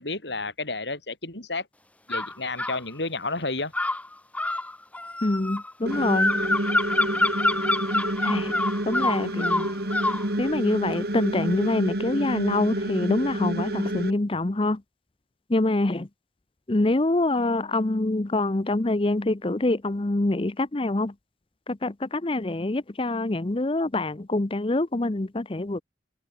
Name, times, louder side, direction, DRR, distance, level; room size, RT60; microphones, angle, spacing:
voice 1, 0.0-1.7 2.1-3.7, left 3 dB, 80° left, 6.8 m, -31 dB
sound 1, 2.1-2.8 3.7-10.3, left 2 dB, 10° left, 1.0 m, -26 dB
voice 2, 5.2-6.4 8.2-8.5 8.9-9.7 10.4-14.8 15.5-16.1 16.7-21.1 21.7-25.8, left 2 dB, 30° left, 0.7 m, -25 dB
sound 2, 5.9-14.1, right 1 dB, 60° right, 4.5 m, -29 dB
open air
head